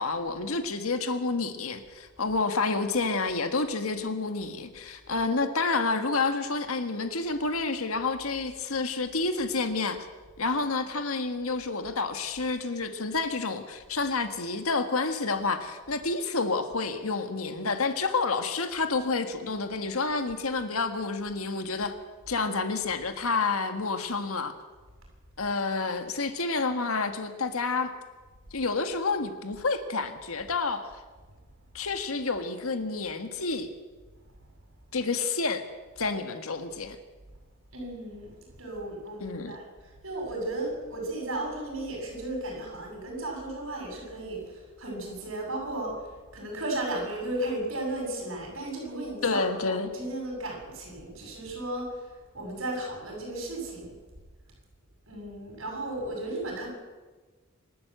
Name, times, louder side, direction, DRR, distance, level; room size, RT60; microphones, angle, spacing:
voice 1, 0.0-10.1 10.4-21.9 22.3-24.5 25.4-27.9 28.5-30.9 31.7-33.7 34.9-35.6 36.0-37.0 39.2-39.6 49.2-49.9, left 3 dB, 85° left, 7 dB, 1.7 m, -29 dB
voice 2, 37.7-38.3 38.6-52.1 52.3-53.9 55.1-56.7, right 1 dB, 70° right, 0 dB, 7.9 m, -35 dB
26.0 x 12.5 x 8.1 m, 1.3 s
head